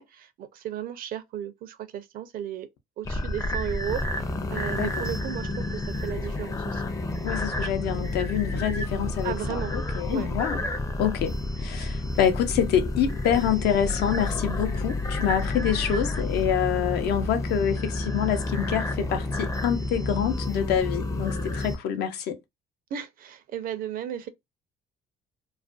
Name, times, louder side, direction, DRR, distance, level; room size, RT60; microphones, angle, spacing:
voice 1, 0.0-2.7 3.0-6.9 9.2-9.7 10.1-10.3 22.9-24.3, right 10 dB, 60° right, 0.5 m, -34 dB
sound 1, 3.0-21.8, left 2 dB, 20° left, 0.5 m, -30 dB
voice 2, 7.2-10.6 11.0-22.4, left 9 dB, 75° left, 0.6 m, -26 dB
2.4 x 2.2 x 2.4 m
cardioid pair, 110°, 17 cm